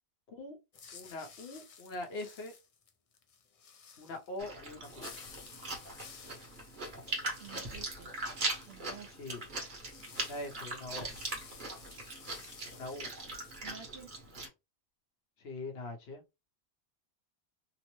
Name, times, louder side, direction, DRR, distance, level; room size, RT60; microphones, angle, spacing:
sound 1, 0.7-13.6, left 6 dB, 50° left, 0.4 m, -55 dB
voice 1, 0.9-2.5 4.0-5.1 9.2-9.4 10.2-11.1 12.7-13.1 15.4-16.2, left 2 dB, 70° left, 1.0 m, -42 dB
Chewing mastication, 4.4-14.5, right 2 dB, 50° right, 1.1 m, -40 dB
voice 2, 7.4-8.1 8.7-9.1 13.6-14.1, right 8 dB, 70° right, 0.8 m, -50 dB
3.0 x 2.0 x 3.0 m
omnidirectional pair, 1.1 m